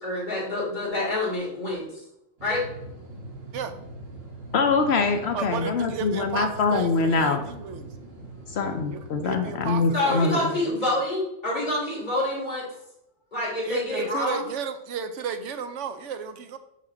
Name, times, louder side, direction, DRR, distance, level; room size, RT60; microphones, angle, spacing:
voice 1, 0.0-1.8 2.4-2.6 9.9-12.6 13.3-14.4, left 2 dB, 40° left, -9 dB, 3.1 m, -27 dB
sound 1, 2.4-9.8, right 2 dB, 55° right, 1.6 m, -42 dB
voice 2, 4.5-7.4 8.5-10.5, left 4 dB, 65° left, 6 dB, 0.8 m, -24 dB
voice 3, 5.3-7.9 8.9-11.0 13.6-16.6, right 6 dB, 80° right, 9 dB, 1.0 m, -33 dB
6.4 x 5.7 x 3.8 m, 0.83 s
omnidirectional pair, 1.2 m